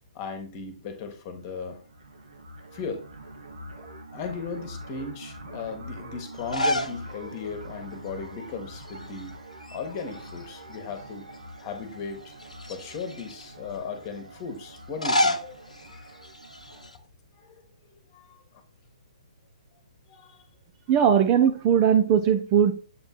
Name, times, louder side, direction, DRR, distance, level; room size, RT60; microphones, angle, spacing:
voice 1, 0.1-1.8 2.7-3.1 4.1-9.4 9.7-11.2 11.6-12.3 12.6-16.2 16.7-16.9 17.3-17.6 17.9-18.4 20.1-20.5, left 5 dB, 30° left, 7 dB, 1.4 m, -37 dB
sound 1, 1.3-16.9, right 1 dB, 65° right, 1.3 m, -45 dB
sound 2, 6.4-7.0 7.4-7.5 8.8-9.3 9.6-10.8 11.3-11.4 12.3-13.5 14.8-17.0, left 1 dB, 75° left, 0.9 m, -29 dB
voice 2, 20.9-22.7, right 8 dB, 25° right, 7 dB, 0.6 m, -19 dB
7.6 x 3.5 x 4.4 m, 0.36 s
figure-of-eight pair, 125°, 4 cm